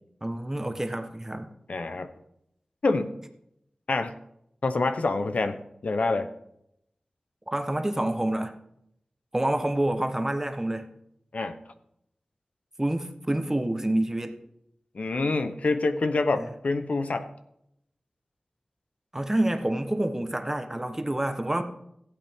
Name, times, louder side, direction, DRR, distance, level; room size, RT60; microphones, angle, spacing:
voice 1, 0.2-1.5 7.5-8.5 9.3-10.9 12.8-14.4 16.4-16.5 19.1-21.6, right 1 dB, 20° right, 7 dB, 1.0 m, -27 dB
voice 2, 1.7-2.1 2.8-3.1 3.9-4.1 4.6-6.3 11.3-11.6 14.9-17.3, left 3 dB, 70° left, 10 dB, 0.7 m, -26 dB
15.5 x 8.4 x 3.6 m, 0.77 s
wide cardioid pair, 75°, 2 cm